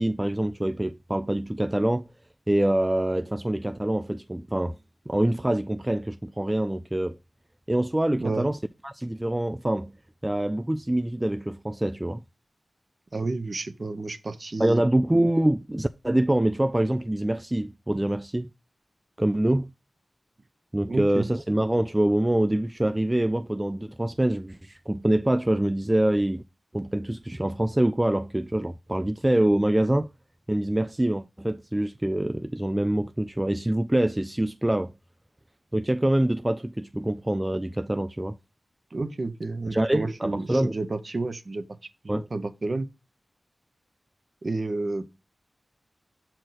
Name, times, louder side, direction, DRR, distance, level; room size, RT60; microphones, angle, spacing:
voice 1, 0.0-2.1 2.5-4.8 5.1-7.2 7.7-8.6 8.8-9.9 10.2-12.2 14.6-18.5 19.2-19.7 20.7-26.4 26.7-30.1 30.5-34.9 35.7-38.4 39.7-40.7 42.1-42.3, right 1 dB, 15° right, 0.3 m, -25 dB
voice 2, 8.1-8.5 13.1-14.8 20.9-21.3 38.9-41.6 42.0-42.9 44.4-45.0, right 3 dB, 45° right, 0.8 m, -31 dB
6.4 x 4.4 x 4.0 m
wide cardioid pair, 75°, 0 cm